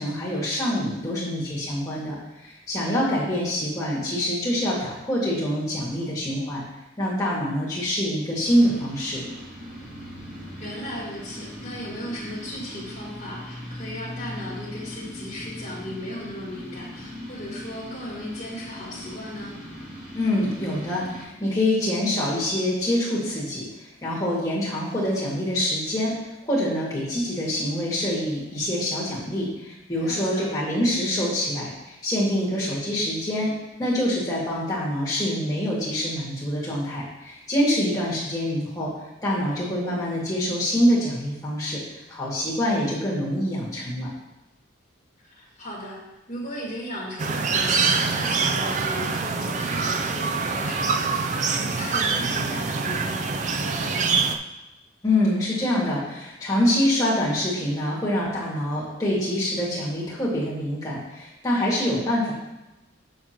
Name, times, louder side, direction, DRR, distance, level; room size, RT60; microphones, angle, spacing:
voice 1, 0.0-2.2 2.4-6.6 7.0-9.2 20.1-23.6 24.0-26.1 26.4-33.5 33.8-38.9 39.2-41.8 42.1-44.1 55.0-62.3, left 1 dB, 15° left, -7 dB, 2.0 m, -25 dB
sound 1, 8.4-21.2, equal, 5° right, 2.1 m, -39 dB
voice 2, 10.6-19.6 30.0-30.5 45.2-46.0 46.3-54.3, left 1 dB, 30° left, -7 dB, 1.9 m, -37 dB
sound 2, 47.2-54.4, right 4 dB, 35° right, 0.3 m, -25 dB
6.9 x 6.7 x 2.9 m, 0.97 s
head